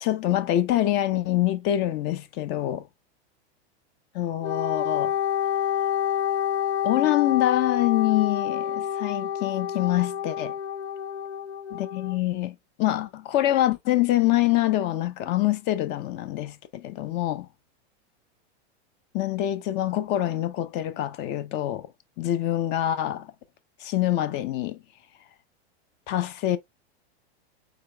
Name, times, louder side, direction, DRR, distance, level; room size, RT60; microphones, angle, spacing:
voice 1, 0.0-2.9 4.1-5.1 6.8-10.5 11.7-17.5 19.1-21.9 22.2-23.3 23.8-24.8 26.1-26.6, left 14 dB, 30° left, 0.6 m, -25 dB
Wind instrument woodwind instrument, 4.4-12.1, left 9 dB, 80° left, 0.9 m, -28 dB
5.0 x 3.8 x 2.3 m
supercardioid pair, 140°, 33 cm